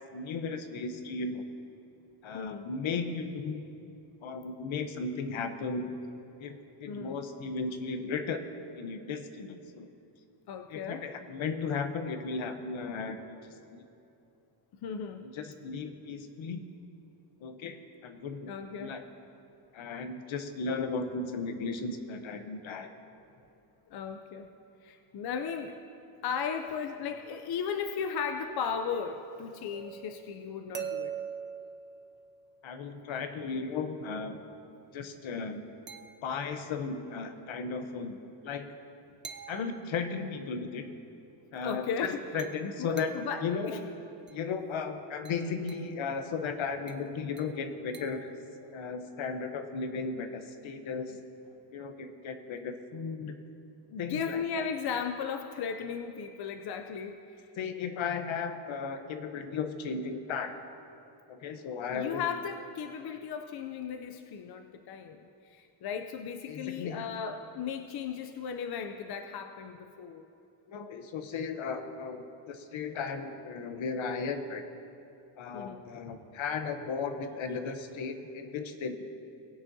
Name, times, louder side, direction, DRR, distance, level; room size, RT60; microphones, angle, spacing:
voice 1, 0.0-1.4 2.2-3.6 4.2-6.0 6.4-8.4 8.7-9.9 10.7-13.4 13.7-13.8 15.2-16.7 17.4-18.5 18.8-19.0 19.7-22.9 32.6-34.4 34.9-35.6 36.2-38.7 39.5-40.9 41.5-43.9 44.3-48.3 48.7-51.1 51.7-53.4 54.0-54.7 57.6-60.5 61.3-62.2 66.5-67.1 70.7-74.6 75.4-79.0, left 5 dB, 70° left, 8 dB, 0.9 m, -35 dB
voice 2, 2.3-2.7 6.9-7.2 10.5-11.0 14.8-15.2 18.5-19.0 23.9-24.5 24.8-25.8 26.2-31.1 41.6-42.2 42.8-43.8 48.6-48.8 53.9-57.2 61.9-65.2 65.5-70.2 75.5-75.8, left 6 dB, 50° left, 6 dB, 0.5 m, -36 dB
sound 1, 29.7-32.8 35.9-36.7 39.2-40.4 42.4-43.4 44.3-44.5 45.3-46.0 46.9-48.4, right 7 dB, 25° right, 0.4 m, -44 dB
20.0 x 9.0 x 2.7 m, 2.8 s
wide cardioid pair, 170°, 49 cm